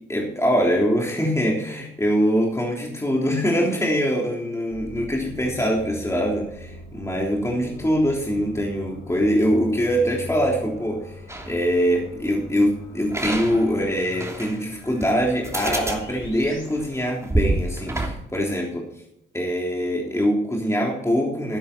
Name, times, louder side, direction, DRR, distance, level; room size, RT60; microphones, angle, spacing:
voice 1, 0.1-11.2 11.5-18.9 19.3-21.6, equal, 15° left, -1 dB, 3.4 m, -23 dB
sound 1, 4.7-16.7, left 1 dB, 75° left, 4.2 m, -41 dB
sound 2, 11.3-11.6 13.1-14.6 15.0-15.1 15.4-18.1, right 2 dB, 15° right, 2.9 m, -27 dB
13.0 x 10.0 x 4.3 m, 0.81 s
supercardioid pair, 50°, 20 cm